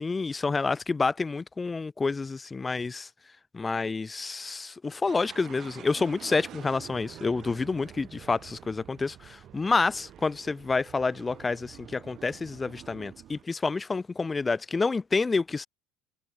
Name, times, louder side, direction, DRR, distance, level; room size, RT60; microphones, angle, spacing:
voice 1, 0.0-3.1 3.5-15.7, left 4 dB, 15° left, 0.5 m, -28 dB
sound 1, 5.1-13.4, right 11 dB, 40° right, 2.6 m, -48 dB
supercardioid pair, 130°, 0 cm